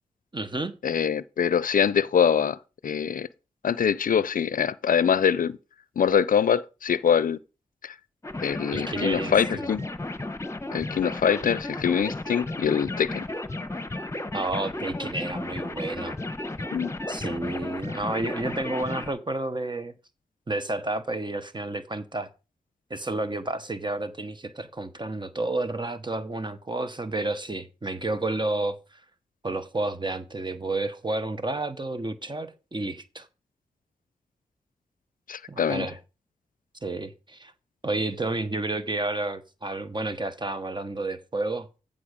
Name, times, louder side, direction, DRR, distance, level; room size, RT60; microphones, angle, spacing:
voice 1, 0.3-0.7 8.7-9.7 14.3-16.2 17.1-19.9 20.5-22.3 22.9-29.0 29.4-33.3 35.5-36.0 36.8-37.5 37.8-41.8, right 2 dB, 30° right, 1.1 m, -31 dB
voice 2, 0.8-2.6 2.8-3.3 3.6-5.6 6.0-7.4 7.8-8.0 8.4-9.9 10.7-13.2 16.7-16.9 35.3-35.9, left 7 dB, 70° left, 0.5 m, -24 dB
sound 1, 8.2-19.1, left 2 dB, 20° left, 1.1 m, -34 dB
14.5 x 5.3 x 5.1 m
cardioid pair, 50°, 15 cm